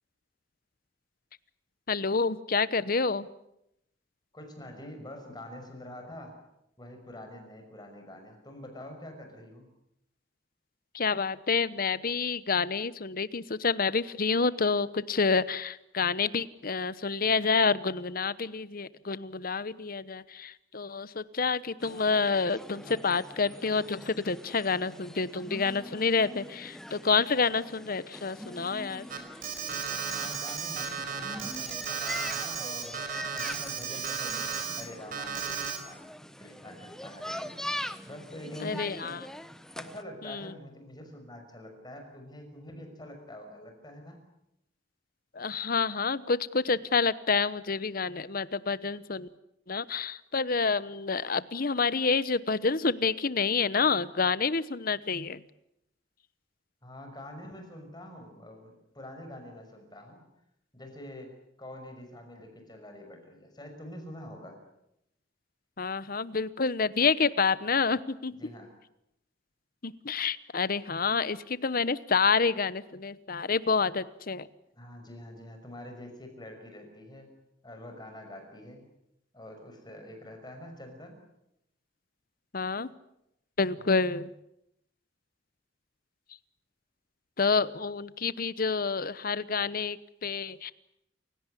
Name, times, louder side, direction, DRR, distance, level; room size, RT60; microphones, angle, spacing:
voice 1, 1.9-3.3 10.9-29.1 38.6-39.2 40.2-40.5 45.3-49.3 49.7-55.4 65.8-68.4 69.8-74.5 82.5-82.9 83.6-84.3 87.4-90.7, left 4 dB, 50° left, 17 dB, 1.0 m, -28 dB
voice 2, 4.3-6.3 6.8-9.7 30.1-33.0 33.4-36.0 36.4-37.6 38.1-39.3 39.7-44.2 56.8-60.2 60.7-64.6 68.4-68.7 74.7-77.3 77.6-78.8 79.3-81.2 83.8-84.1, left 1 dB, 25° left, 5 dB, 5.9 m, -46 dB
sound 1, 21.8-40.0, equal, 5° left, 1.0 m, -43 dB
Alarm, 29.1-34.8 35.1-35.8, right 6 dB, 50° right, 4.6 m, -34 dB
29.0 x 17.0 x 9.9 m, 0.82 s
head